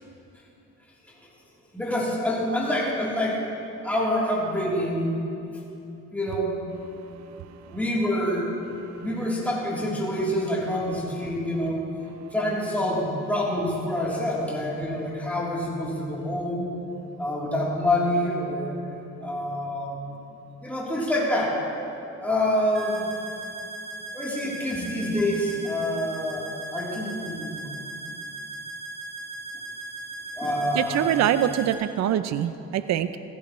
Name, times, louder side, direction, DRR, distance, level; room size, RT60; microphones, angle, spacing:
voice 1, 1.7-3.4 3.8-5.1 6.1-6.5 7.7-8.5 9.0-11.9 12.3-16.7 17.2-18.8 19.2-20.2 20.6-21.6 22.2-23.1 24.1-27.7 30.4-31.1, left 1 dB, 5° left, -6 dB, 3.3 m, -26 dB
sound 1, 22.7-31.7, right 2 dB, 40° right, 2.9 m, -38 dB
voice 2, 30.8-33.2, right 10 dB, 60° right, 12 dB, 0.5 m, -24 dB
16.0 x 15.0 x 3.1 m, 2.8 s
cardioid pair, 90°, 30 cm